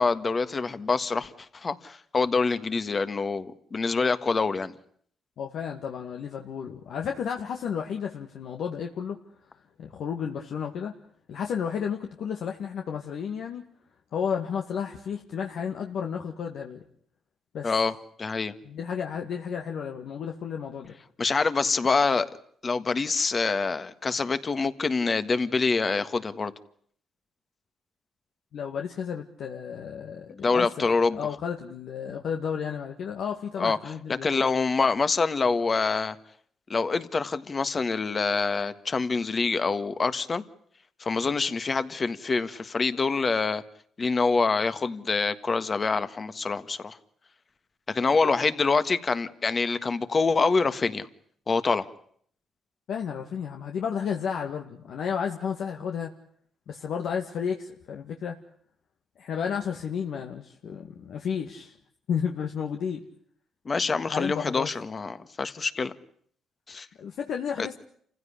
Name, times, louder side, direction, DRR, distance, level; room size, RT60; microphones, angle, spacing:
voice 1, 0.0-4.8 17.6-17.9 18.2-18.5 21.2-22.3 22.6-26.5 30.3-31.2 33.6-33.9 34.2-36.2 36.7-40.4 41.0-43.6 44.0-47.0 47.9-51.1 51.5-51.9 63.6-65.9 66.7-66.9 67.6-67.7, left 4 dB, 35° left, 12 dB, 1.6 m, -26 dB
voice 2, 5.4-9.2 9.8-10.9 11.3-13.6 14.1-16.8 17.5-17.7 18.6-20.9 28.5-34.4 52.9-56.1 56.7-58.4 59.2-61.8 62.1-63.0 64.1-64.7 67.0-67.7, left 7 dB, 70° left, 2 dB, 2.0 m, -32 dB
28.5 x 16.0 x 10.0 m, 0.63 s
cardioid pair, 90°, 0 cm